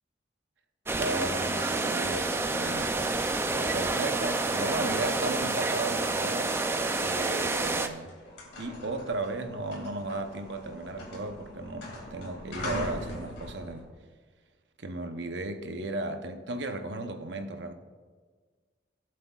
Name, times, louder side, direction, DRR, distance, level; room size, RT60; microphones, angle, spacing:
sound 1, 0.9-7.9, right 3 dB, 15° right, 0.4 m, -29 dB
voice 1, 1.0-3.0 3.7-6.6 6.9-8.2 8.6-13.9 14.8-17.7, right 2 dB, 75° right, 0.8 m, -35 dB
sound 2, 2.9-7.0 7.6-7.8 8.0-13.8, left 1 dB, 75° left, 2.3 m, -43 dB
17.0 x 7.7 x 2.4 m
head